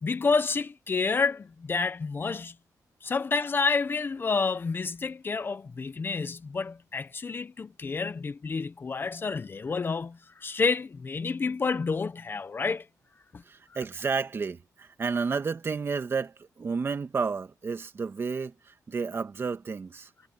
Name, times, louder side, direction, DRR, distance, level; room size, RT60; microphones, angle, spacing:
voice 1, 0.0-2.5 3.0-12.9 13.3-13.4, left 4 dB, 35° left, 1.0 m, -29 dB
voice 2, 13.4-20.1, right 5 dB, 40° right, 2.4 m, -31 dB
cardioid pair, 120°, 7 cm